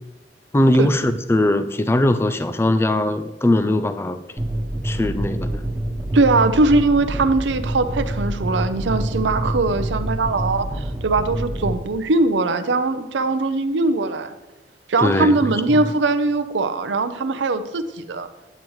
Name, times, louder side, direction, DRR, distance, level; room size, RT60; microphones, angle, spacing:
voice 1, 0.5-4.2 4.8-5.6 15.0-15.8, left 1 dB, 15° left, 10 dB, 0.3 m, -20 dB
sound 1, 4.4-11.8, right 1 dB, 10° right, 1.3 m, -26 dB
voice 2, 6.1-14.3 14.9-18.3, right 3 dB, 85° right, 9 dB, 0.6 m, -20 dB
9.1 x 8.6 x 3.1 m, 1.1 s
head